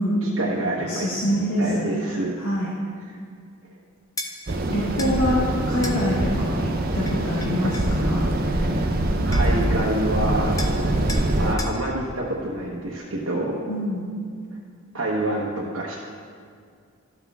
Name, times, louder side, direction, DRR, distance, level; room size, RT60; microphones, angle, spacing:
voice 1, 0.2-2.3 3.1-3.2 7.6-7.7 8.5-8.9 9.2-10.5 10.8-10.9 11.4-13.7 14.9-16.0, right 1 dB, 70° right, -5 dB, 0.9 m, -28 dB
voice 2, 0.9-1.8 2.4-2.7 4.7-8.2 13.7-14.1, equal, 85° left, -5 dB, 1.3 m, -25 dB
sound 1, 4.2-4.3 5.0-5.2 5.8-6.0 7.1-7.9 9.0-9.1 9.3-9.7 10.6-10.8 11.1-11.3 11.6-11.8, left 2 dB, 15° left, 0.5 m, -34 dB
sound 2, 4.5-11.6, right 1 dB, 40° right, 0.6 m, -23 dB
12.5 x 6.0 x 3.5 m, 2.2 s
head